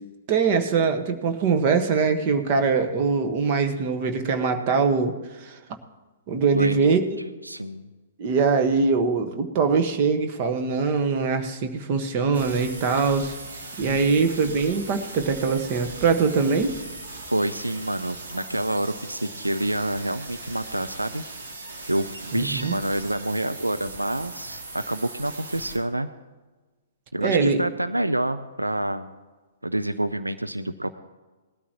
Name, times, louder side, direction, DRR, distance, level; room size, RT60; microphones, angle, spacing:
voice 1, 0.3-5.6 6.3-7.2 8.2-13.4 13.8-16.8 22.3-22.8 27.2-27.6, right 5 dB, 40° right, 7 dB, 1.4 m, -22 dB
voice 2, 7.4-7.9 13.9-14.3 17.3-21.2 21.9-26.1 27.1-29.1 29.6-30.9, right 1 dB, 90° right, 11 dB, 0.5 m, -27 dB
sound 1, 12.3-25.8, right 2 dB, 65° right, 2.6 m, -39 dB
19.5 x 13.0 x 3.0 m, 1.2 s
figure-of-eight pair, 115°, 0 cm